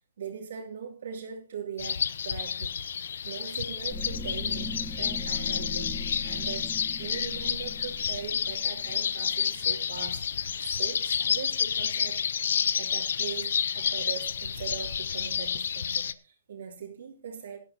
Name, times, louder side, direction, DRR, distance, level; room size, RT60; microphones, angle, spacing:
voice 1, 0.2-10.3 10.6-12.2 12.7-17.6, right 7 dB, 65° right, 2.8 m, -41 dB
sound 1, 1.8-16.1, left 7 dB, 70° left, 0.6 m, -30 dB
sound 2, 3.9-9.9, left 3 dB, 10° left, 1.4 m, -39 dB
17.5 x 12.0 x 2.8 m
hypercardioid pair, 150°, 0 cm